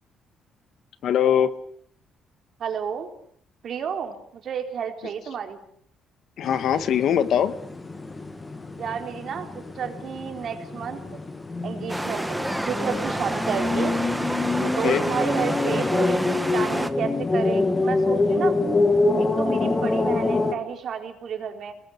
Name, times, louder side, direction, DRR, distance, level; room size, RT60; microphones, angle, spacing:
voice 1, 1.0-1.5 6.4-7.5 14.6-15.0, left 9 dB, 60° left, 12 dB, 1.8 m, -22 dB
voice 2, 2.6-3.1 3.6-5.6 8.8-11.2 11.6-13.9 14.8-18.6 19.2-21.7, right 7 dB, 50° right, 5 dB, 4.1 m, -31 dB
sound 1, 6.4-20.5, left 3 dB, 15° left, 2.3 m, -26 dB
sound 2, 11.9-16.9, right 1 dB, 5° right, 1.6 m, -29 dB
28.0 x 20.0 x 8.1 m, 0.64 s
cardioid pair, 140°, 0 cm